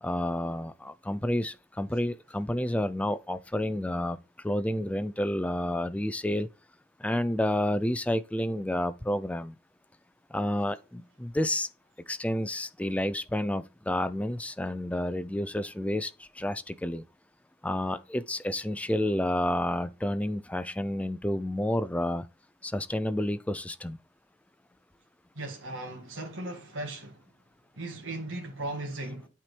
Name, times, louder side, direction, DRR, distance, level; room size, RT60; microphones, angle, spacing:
voice 1, 0.0-4.2 4.4-6.5 7.0-9.5 10.3-11.7 12.1-17.0 17.6-22.3 22.6-24.0, left 1 dB, 5° left, 0.4 m, -30 dB
voice 2, 25.4-27.2 27.7-29.3, right 2 dB, 80° right, 2.0 m, -37 dB
8.9 x 4.5 x 3.3 m
head